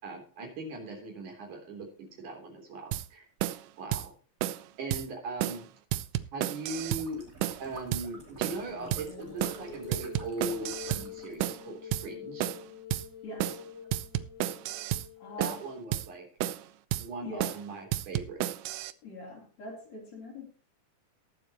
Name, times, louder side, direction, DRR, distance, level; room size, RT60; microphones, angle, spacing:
voice 1, 0.0-3.2 3.8-4.1 4.8-5.7 6.3-7.2 7.6-12.5 15.4-16.2 17.0-18.7, right 2 dB, 70° right, 2 dB, 5.0 m, -39 dB
sound 1, 2.9-3.1 3.4-3.6 3.9-4.1 4.4-4.6 4.9-5.1 5.4-5.6 5.9-7.1 7.4-7.6 7.9-8.1 8.4-8.6 8.9-9.1 9.4-9.6 9.9-11.1 11.4-11.6 11.9-12.1 12.4-12.6 12.9-13.1 13.4-13.6 13.9-15.1 15.4-15.6 15.9-16.1 16.4-16.7 16.9-17.1 17.4-17.6 17.9-18.9, right 14 dB, 90° right, 2.2 m, -32 dB
sound 2, 6.7-11.5, right 3 dB, 25° right, 2.9 m, -50 dB
sound 3, 8.7-16.1, left 6 dB, 75° left, 4.4 m, -46 dB
voice 2, 13.2-13.6 15.2-15.6 17.2-17.6 19.0-20.5, left 2 dB, 60° left, -2 dB, 4.7 m, -43 dB
20.5 x 7.5 x 3.0 m, 0.38 s
omnidirectional pair, 3.6 m